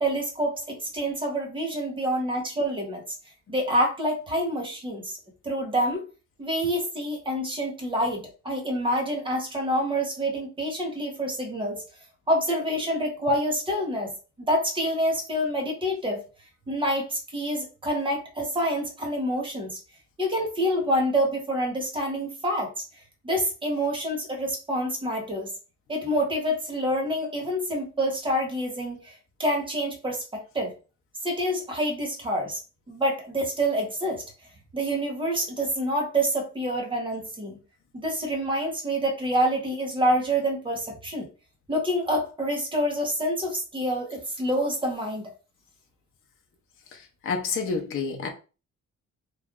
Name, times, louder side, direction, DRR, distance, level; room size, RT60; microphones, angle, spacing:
voice 1, 0.0-3.0 3.5-5.2 5.4-6.0 6.4-11.8 12.3-14.1 14.4-16.2 16.7-19.8 20.2-22.7 23.2-25.5 25.9-29.1 29.4-30.7 31.2-32.6 32.9-34.2 34.7-37.6 37.9-41.3 41.7-45.3, equal, 15° right, 1.1 m, -27 dB
voice 2, 46.9-48.3, left 5 dB, 45° left, 0.7 m, -29 dB
3.1 x 2.5 x 3.6 m
wide cardioid pair, 165°, 29 cm